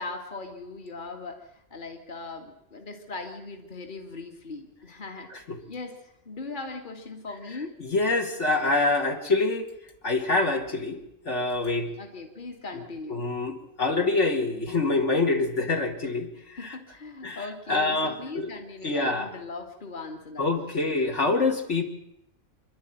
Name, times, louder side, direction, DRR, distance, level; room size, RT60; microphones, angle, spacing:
voice 1, 0.0-5.3 5.7-7.7 12.0-13.3 16.6-21.0, left 3 dB, 35° left, 4 dB, 2.1 m, -39 dB
voice 2, 7.8-9.7 10.0-11.0 11.3-11.9 13.1-16.7 17.2-17.4 17.7-18.5 18.8-19.3 20.4-21.8, left 3 dB, 55° left, 3 dB, 2.4 m, -25 dB
26.5 x 11.5 x 9.2 m, 0.79 s
omnidirectional pair, 1.4 m